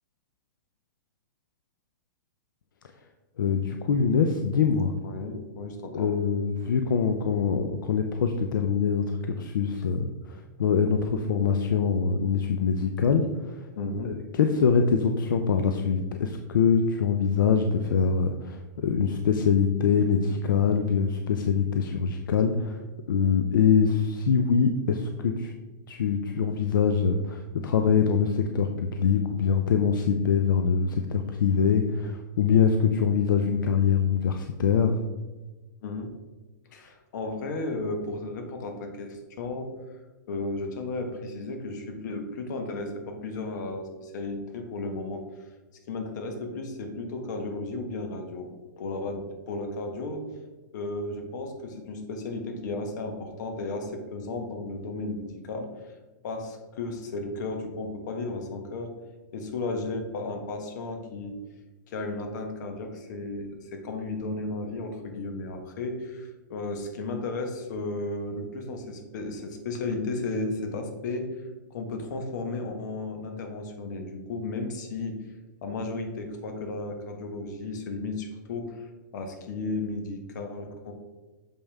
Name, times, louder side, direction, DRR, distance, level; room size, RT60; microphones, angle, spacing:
voice 1, 3.4-4.9 5.9-13.6 14.0-22.8 23.1-25.5 25.9-35.0, left 6 dB, 90° left, 5 dB, 0.5 m, -24 dB
voice 2, 5.0-6.1 13.8-14.1 35.8-36.1 36.7-39.8 40.3-45.2 45.9-50.2 50.7-55.9 56.2-58.9 59.3-61.4 61.9-71.3 71.7-75.2 75.6-80.9, left 2 dB, 65° left, 4 dB, 1.4 m, -34 dB
6.8 x 5.5 x 3.4 m, 1.2 s
hypercardioid pair, 140°, 11 cm